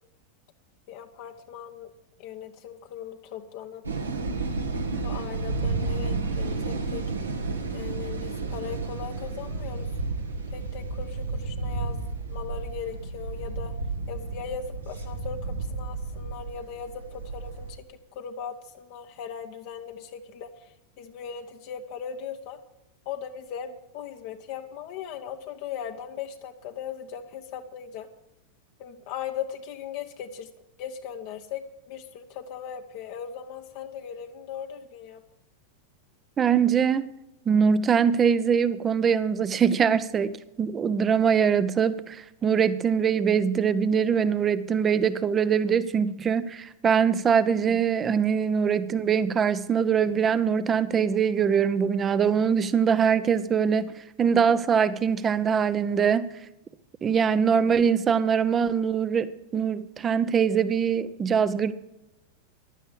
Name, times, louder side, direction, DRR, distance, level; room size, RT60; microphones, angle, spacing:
voice 1, 0.9-1.9 2.2-3.8 5.0-7.0 7.7-9.9 10.5-12.0 12.3-13.7 14.1-15.4 15.7-17.9 18.1-20.5 21.0-22.6 23.1-28.1 28.8-30.5 30.8-35.2, left 8 dB, 45° left, 4 dB, 1.0 m, -38 dB
sound 1, 3.8-17.7, right 3 dB, 75° right, 1.8 m, -32 dB
voice 2, 36.4-37.0 37.5-40.3 40.6-53.9 54.2-56.3 57.0-61.7, right 7 dB, 20° right, 15 dB, 0.8 m, -23 dB
15.0 x 11.5 x 5.3 m, 0.87 s
figure-of-eight pair, 90°, 0 cm